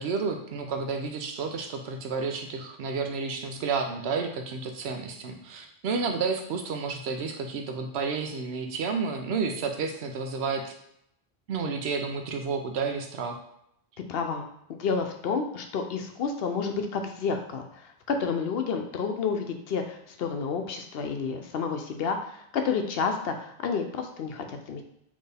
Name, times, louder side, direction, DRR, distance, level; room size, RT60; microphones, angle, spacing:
voice 1, 0.0-10.7 11.5-13.4, right 5 dB, 80° right, 5 dB, 0.9 m, -31 dB
voice 2, 14.1-14.5 14.8-24.8, left 5 dB, 70° left, 5 dB, 0.8 m, -30 dB
4.4 x 3.1 x 3.3 m, 0.76 s
omnidirectional pair, 1.1 m